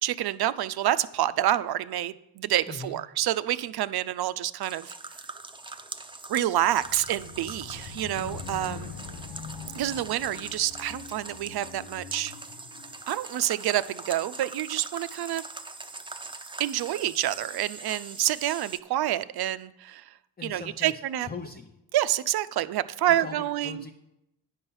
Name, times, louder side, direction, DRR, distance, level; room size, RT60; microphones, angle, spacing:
voice 1, 0.0-4.9 6.3-8.9 9.7-12.3 13.1-15.4 16.6-20.0 20.4-21.3 21.9-23.8, right 13 dB, 55° right, 15 dB, 0.5 m, -28 dB
voice 2, 2.7-3.0 20.4-21.7 23.2-23.9, left 5 dB, 20° left, 2 dB, 0.8 m, -40 dB
sound 1, 4.6-18.8, right 3 dB, 10° right, 0.6 m, -42 dB
sound 2, 6.6-13.1, left 6 dB, 75° left, 0.8 m, -43 dB
9.7 x 5.4 x 5.5 m, 0.86 s
supercardioid pair, 50°, 45 cm